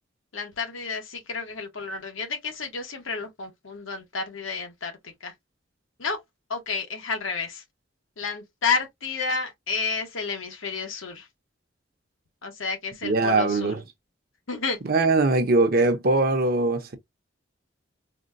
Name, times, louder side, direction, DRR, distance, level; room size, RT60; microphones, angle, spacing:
voice 1, 0.3-5.3 6.0-6.2 6.5-7.6 8.2-11.3 12.4-13.8 14.5-14.8, left 5 dB, 85° left, 1.1 m, -31 dB
voice 2, 13.0-13.8 14.9-17.0, right 3 dB, 50° right, 0.7 m, -21 dB
4.2 x 2.2 x 2.5 m
head